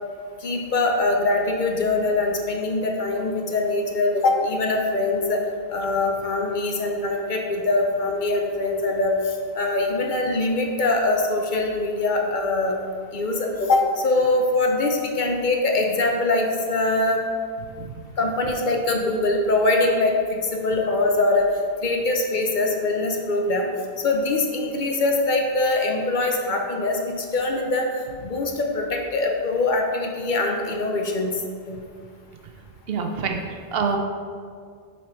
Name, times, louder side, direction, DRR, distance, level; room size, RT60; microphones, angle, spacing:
voice 1, 0.4-5.4 5.7-9.1 9.5-12.7 13.1-17.2 18.2-21.5 21.8-23.7 24.0-27.9 28.2-31.3 31.7-31.8, left 2 dB, 55° left, 2 dB, 0.8 m, -23 dB
voice 2, 32.9-34.0, right 5 dB, 70° right, 3 dB, 0.9 m, -26 dB
6.1 x 4.2 x 4.4 m, 2.1 s
omnidirectional pair, 1.0 m